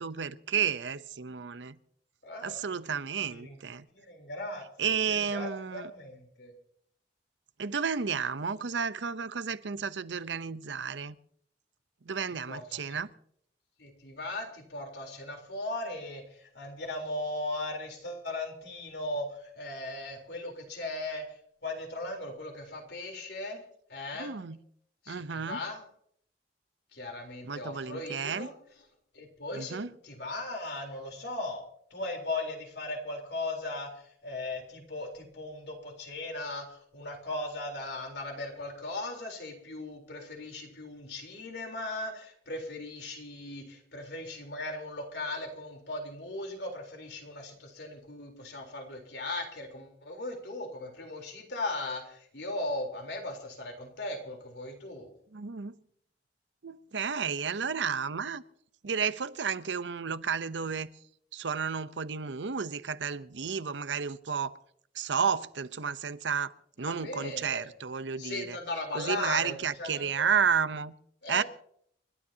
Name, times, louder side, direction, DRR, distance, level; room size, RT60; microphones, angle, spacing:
voice 1, 0.0-1.8 2.4-3.9 4.8-5.9 7.6-11.2 12.0-13.1 24.1-24.6 25.1-25.6 27.4-28.5 29.5-29.9 55.3-55.7 56.6-58.4 58.8-60.9 61.3-64.6 64.9-66.5 66.8-68.6 68.9-71.0 71.3-71.4, right 6 dB, 85° right, 0.7 m, -32 dB
voice 2, 2.2-2.6 3.3-3.6 3.9-6.5 12.5-13.0 13.8-21.2 21.6-23.6 23.9-24.3 25.0-25.8 26.9-28.5 29.1-29.8 30.0-31.6 31.9-33.9 34.2-55.1 66.8-67.7 68.2-69.5 69.8-70.3 71.2-71.4, left 2 dB, 70° left, 3.8 m, -38 dB
30.0 x 12.5 x 2.8 m
head